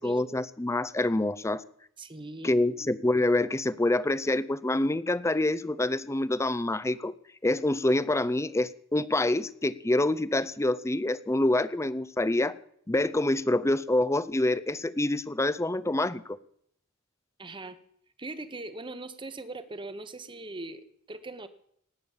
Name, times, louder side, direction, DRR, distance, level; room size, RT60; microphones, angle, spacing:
voice 1, 0.0-1.6 2.4-7.1 7.4-12.6 12.9-16.4, left 1 dB, 15° left, 16 dB, 0.6 m, -26 dB
voice 2, 2.0-2.5 17.4-17.8 18.2-21.5, right 2 dB, 25° right, 11 dB, 1.1 m, -40 dB
18.5 x 8.6 x 7.3 m, 0.68 s
head